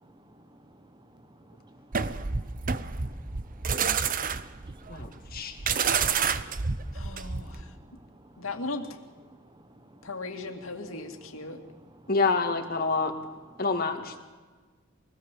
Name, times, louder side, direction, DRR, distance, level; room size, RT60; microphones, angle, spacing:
voice 1, 0.0-5.2 5.5-8.5 9.3-10.1 11.4-12.1, right 1 dB, 20° right, 9 dB, 1.2 m, -56 dB
sound 1, 1.9-7.6, right 6 dB, 45° right, 0.8 m, -29 dB
voice 2, 4.9-5.6 12.1-13.1 13.6-14.2, left 4 dB, 50° left, 5 dB, 2.2 m, -27 dB
voice 3, 6.9-7.7 8.4-8.9 10.0-11.6, left 3 dB, 85° left, 4 dB, 2.3 m, -37 dB
23.0 x 17.5 x 7.5 m, 1.4 s
head